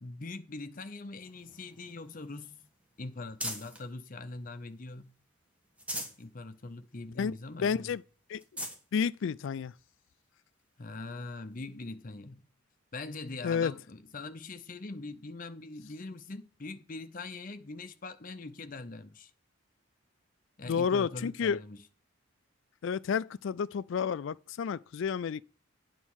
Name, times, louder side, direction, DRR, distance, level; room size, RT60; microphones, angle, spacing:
voice 1, 0.0-2.7 3.0-5.1 6.2-7.9 10.8-12.4 12.9-19.3 20.6-21.8, left 3 dB, 40° left, 0.7 m, -42 dB
sound 1, 1.2-3.9 4.4-5.2 5.6-6.3 6.7-6.8 7.2-7.3 7.9-8.0 8.3-8.8 9.6-9.7 11.5-11.6, equal, 5° right, 1.4 m, -42 dB
voice 2, 7.6-8.0 8.3-8.4 8.9-9.7 13.4-13.7 20.7-21.6 22.8-25.4, left 6 dB, 60° left, 0.3 m, -30 dB
9.1 x 4.2 x 6.3 m
head